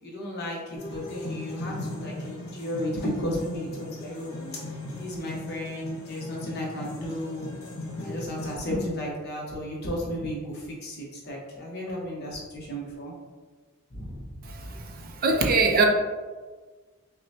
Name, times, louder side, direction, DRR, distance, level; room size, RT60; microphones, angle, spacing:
voice 1, 0.0-4.3 5.0-7.5 8.0-13.1 13.9-14.6, left 1 dB, 50° left, -3 dB, 1.0 m, -34 dB
sound 1, 0.7-8.5, left 1 dB, 85° left, 1.1 m, -37 dB
voice 2, 15.2-15.8, right 3 dB, 45° right, 2 dB, 0.4 m, -20 dB
5.8 x 2.2 x 2.8 m, 1.4 s
head